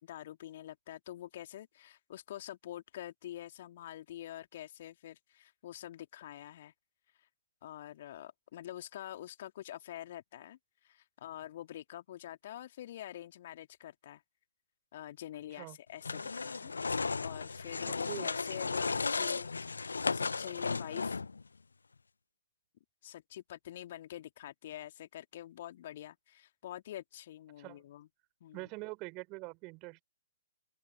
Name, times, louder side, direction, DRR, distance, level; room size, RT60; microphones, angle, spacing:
voice 1, 0.0-6.7 7.2-7.3 7.6-14.2 14.9-16.7 17.2-21.2 23.0-28.1 28.4-28.7, left 12 dB, 45° left, 2.1 m, -46 dB
sound 1, 16.0-21.4, left 4 dB, 70° left, 0.6 m, -35 dB
voice 2, 17.9-18.3 27.6-27.8 28.5-30.0, right 27 dB, 30° right, 5.8 m, -44 dB
open air
figure-of-eight pair, 125°, 0 cm